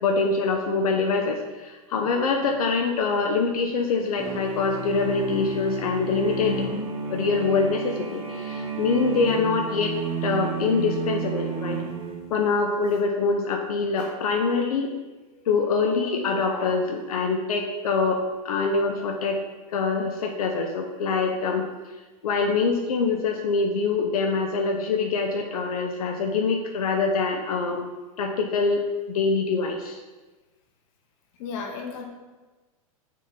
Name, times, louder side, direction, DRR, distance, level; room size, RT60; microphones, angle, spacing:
voice 1, 0.0-6.7 7.1-9.9 10.2-11.8 12.3-14.9 15.5-19.4 19.7-21.7 22.2-27.9 28.2-30.0, left 4 dB, 80° left, 3 dB, 0.7 m, -24 dB
sound 1, 4.2-12.5, right 4 dB, 30° right, 1.2 m, -31 dB
voice 2, 31.4-32.1, left 5 dB, 60° left, 3 dB, 1.0 m, -34 dB
6.3 x 3.8 x 4.1 m, 1.2 s
hypercardioid pair, 100°, 18 cm